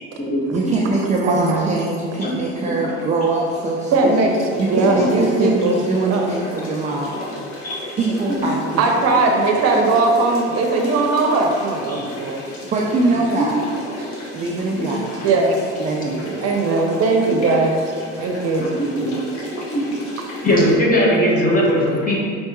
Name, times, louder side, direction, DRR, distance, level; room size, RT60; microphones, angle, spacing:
voice 1, 0.5-4.2 4.6-7.2 8.0-9.0 12.6-13.7 14.3-15.3 15.8-16.5 17.4-17.6, right 3 dB, 25° right, -1 dB, 0.4 m, -23 dB
voice 2, 1.2-1.7 3.9-5.8 6.1-6.3 8.8-12.4 15.2-15.6 16.4-17.8 18.2-18.7 21.5-21.9, right 3 dB, 55° right, 2 dB, 0.7 m, -19 dB
sound 1, 2.2-20.8, left 1 dB, 70° left, 1.2 m, -35 dB
voice 3, 18.6-19.4 19.7-19.8 20.4-22.2, equal, 30° left, -4 dB, 1.1 m, -20 dB
4.5 x 3.4 x 2.9 m, 2.2 s
cardioid pair, 105°, 30 cm